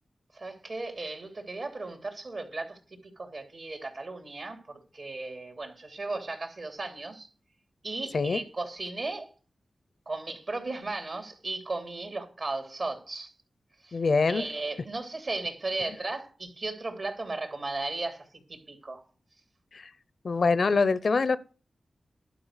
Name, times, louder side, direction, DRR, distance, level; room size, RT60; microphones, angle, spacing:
voice 1, 0.3-7.3 7.8-9.3 10.1-13.3 13.8-19.0, right 3 dB, 65° right, 3.0 m, -36 dB
voice 2, 13.9-14.4 19.7-19.9 20.2-21.4, left 4 dB, 65° left, 0.7 m, -24 dB
11.5 x 5.0 x 8.1 m
cardioid pair, 45°, 0 cm